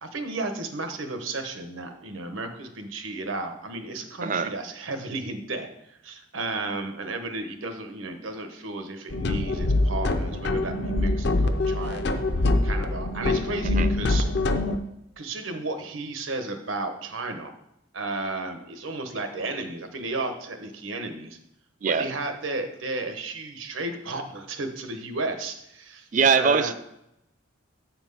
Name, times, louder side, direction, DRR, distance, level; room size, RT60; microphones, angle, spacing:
voice 1, 0.0-12.2 12.6-14.2 15.2-17.6 17.9-21.4 21.8-26.1 26.3-26.7, right 2 dB, 90° right, 7 dB, 1.1 m, -33 dB
voice 2, 4.2-4.5 13.7-13.9 21.8-22.1 26.1-26.7, right 5 dB, 40° right, 13 dB, 0.4 m, -22 dB
sound 1, 9.1-14.8, left 2 dB, 55° left, 0.6 m, -24 dB
8.3 x 4.4 x 5.5 m, 0.80 s
head